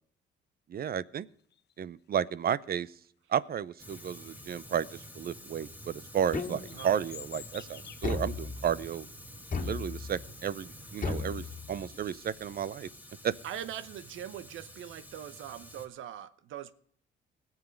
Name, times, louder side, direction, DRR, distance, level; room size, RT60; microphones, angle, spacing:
voice 1, 0.7-1.3 1.8-2.9 3.3-9.1 9.6-12.9 13.2-13.3, right 9 dB, 50° right, 0.6 m, -32 dB
sound 1, 1.3-2.1 3.0-3.1 3.7-5.1 5.4-5.6 6.1-8.6 8.9-9.0 9.4-10.3 10.7-11.3 11.6-11.7 12.3-12.6 13.2-13.3 13.5-13.6 14.0-14.2 14.6-14.8, left 10 dB, 60° left, 0.9 m, -52 dB
Fire, 3.8-15.9, equal, 10° right, 2.4 m, -49 dB
sound 2, 6.3-7.0 8.0-8.9 9.5-10.3 11.0-12.0, left 4 dB, 40° left, 1.9 m, -36 dB
voice 2, 13.4-16.7, right 10 dB, 80° right, 0.9 m, -41 dB
18.5 x 7.3 x 5.2 m
cardioid pair, 90°, 20 cm